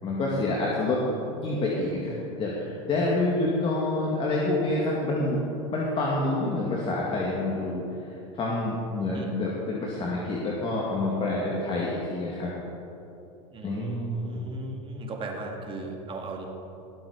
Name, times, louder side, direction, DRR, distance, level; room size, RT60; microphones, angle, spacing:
voice 1, 0.0-5.4 5.7-12.5 13.6-14.5, left 2 dB, 30° left, -4 dB, 2.1 m, -28 dB
voice 2, 13.5-16.5, right 2 dB, 30° right, 1 dB, 2.2 m, -38 dB
18.5 x 7.6 x 5.1 m, 2.9 s
supercardioid pair, 110°, 17 cm